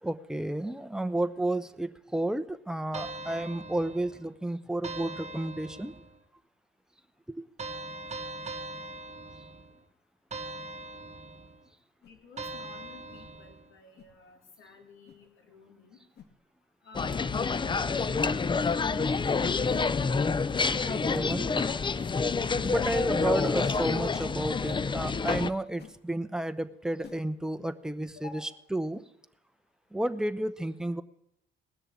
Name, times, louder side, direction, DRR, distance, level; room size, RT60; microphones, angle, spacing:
voice 1, 0.0-5.9 7.3-7.5 20.8-21.5 22.6-28.4 28.7-29.0 29.9-31.0, right 1 dB, 5° right, 10 dB, 0.8 m, -32 dB
sound 1, 2.9-4.3 4.8-6.2 7.6-9.8 10.3-11.6 12.4-13.7, right 2 dB, 35° right, 1.2 m, -41 dB
voice 2, 12.0-16.0 16.8-18.3 18.8-19.1 28.1-28.5, left 5 dB, 85° left, 2 dB, 3.4 m, -52 dB
sound 2, 12.0-12.2 13.1-13.3 14.0-14.1 15.0-15.2 16.1-16.3 17.2-17.4 18.6-18.8 19.7-19.9 20.6-20.8 21.6-21.8 22.6-22.8 23.5-23.7 24.6-24.8 25.8-25.9 27.0-27.2, left 7 dB, 55° left, 1.6 m, -48 dB
sound 3, 16.9-25.5, left 4 dB, 25° left, 0.5 m, -28 dB
18.5 x 6.7 x 8.7 m, 0.81 s
cardioid pair, 90°, 20 cm